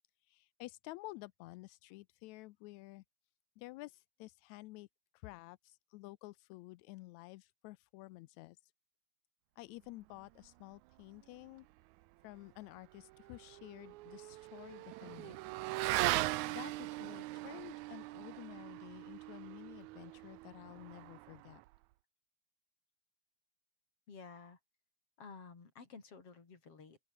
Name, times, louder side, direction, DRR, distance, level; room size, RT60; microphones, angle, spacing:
voice 1, 0.2-3.0 3.6-4.9 5.1-8.7 9.6-11.7 12.2-15.4 16.5-21.6, left 20 dB, 80° left, 1.8 m, -51 dB
Motorcycle / Accelerating revving vroom, 13.0-21.8, right 19 dB, 80° right, 1.9 m, -40 dB
voice 2, 24.1-24.6 25.2-27.0, left 5 dB, 50° left, 4.8 m, -53 dB
open air
omnidirectional pair, 3.5 m